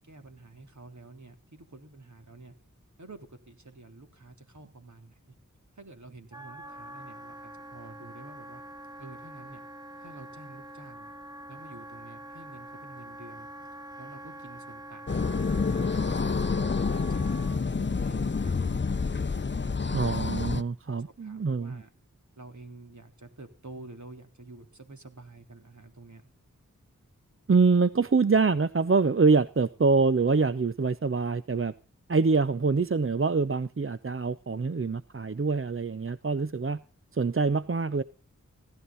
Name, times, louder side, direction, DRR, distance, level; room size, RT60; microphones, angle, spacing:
voice 1, 0.1-2.5 3.0-5.2 5.8-8.6 9.0-9.6 10.0-11.1 11.5-13.5 14.0-16.4 16.8-19.1 19.6-20.5 20.9-21.9 22.4-26.3, right 2 dB, 65° right, 3.5 m, -49 dB
Wind instrument woodwind instrument, 6.3-17.6, right 1 dB, 15° right, 1.4 m, -45 dB
sound 1, 15.1-20.6, left 4 dB, 35° left, 0.7 m, -28 dB
voice 2, 19.9-21.8 27.5-31.7 32.1-36.8 37.1-38.0, right 4 dB, 45° right, 0.7 m, -25 dB
16.5 x 13.0 x 4.1 m
wide cardioid pair, 40°, 31 cm